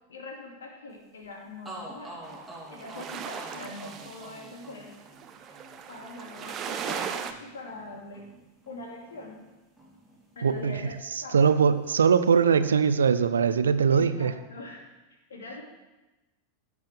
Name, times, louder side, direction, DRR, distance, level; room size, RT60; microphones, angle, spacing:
voice 1, 0.1-2.3 2.7-4.9 5.5-5.6 5.9-8.2 8.7-9.4 10.4-10.9 11.2-11.6 13.9-14.8 15.3-15.6, left 2 dB, 65° left, 0 dB, 2.6 m, -42 dB
sound 1, 1.2-1.3 1.6-9.5 9.8-10.9, right 1 dB, ahead, 2.9 m, -47 dB
sound 2, 2.2-7.3, right 7 dB, 30° right, 0.9 m, -37 dB
voice 2, 10.4-10.8 11.3-14.3, right 6 dB, 70° right, 12 dB, 0.6 m, -21 dB
16.5 x 7.7 x 3.5 m, 1.1 s
figure-of-eight pair, 90°, 0 cm